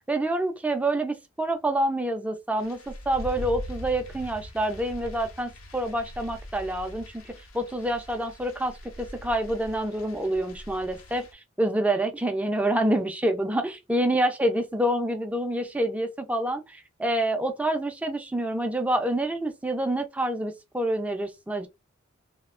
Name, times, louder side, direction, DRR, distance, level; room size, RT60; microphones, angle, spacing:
voice 1, 0.1-11.3 11.6-21.7, right 1 dB, 5° right, 0.4 m, -27 dB
sound 1, 2.6-11.3, left 1 dB, 70° left, 0.6 m, -42 dB
2.8 x 2.1 x 2.4 m
head